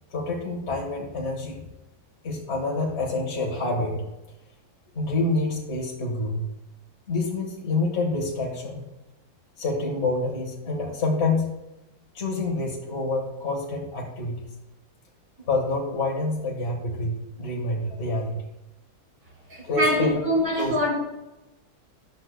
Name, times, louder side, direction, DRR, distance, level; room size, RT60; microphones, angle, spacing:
voice 1, 0.1-1.6 2.2-4.0 4.9-6.5 7.1-8.9 9.6-11.6 12.1-14.3 15.5-18.4 19.6-20.2 20.6-20.7, left 2 dB, 35° left, -1 dB, 1.6 m, -27 dB
voice 2, 19.5-20.9, equal, 60° right, -4 dB, 4.9 m, -24 dB
15.0 x 10.5 x 2.2 m, 0.97 s
omnidirectional pair, 2.1 m